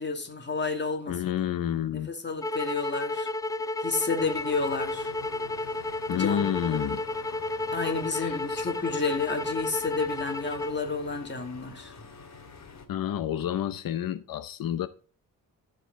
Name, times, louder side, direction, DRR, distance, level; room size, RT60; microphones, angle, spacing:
voice 1, 0.0-1.2 1.9-3.3 3.8-5.1 6.1-6.8 7.7-11.9, left 4 dB, 35° left, 2.5 m, -31 dB
voice 2, 1.1-2.1 6.1-7.0 8.1-8.7 12.9-14.9, left 10 dB, 85° left, 0.8 m, -29 dB
sound 1, 2.4-10.8, left 2 dB, 10° left, 0.4 m, -32 dB
sound 2, 4.2-12.9, left 5 dB, 55° left, 2.1 m, -47 dB
15.0 x 5.1 x 3.7 m
cardioid pair, 105°, 33 cm